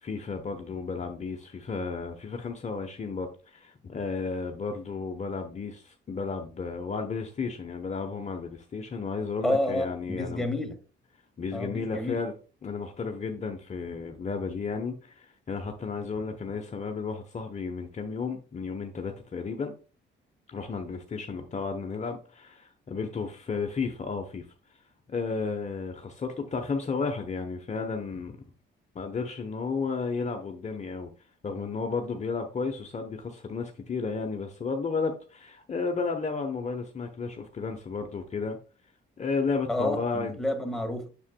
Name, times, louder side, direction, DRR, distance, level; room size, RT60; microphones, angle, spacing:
voice 1, 0.0-10.5 11.4-12.3 12.6-19.7 20.5-24.5 25.1-28.4 28.9-31.1 31.4-38.6 39.2-40.4, left 4 dB, 35° left, 0.9 m, -33 dB
voice 2, 9.4-10.8 11.5-12.2 39.7-41.1, left 1 dB, ahead, 1.6 m, -29 dB
7.1 x 6.9 x 2.2 m
cardioid pair, 90°, 20 cm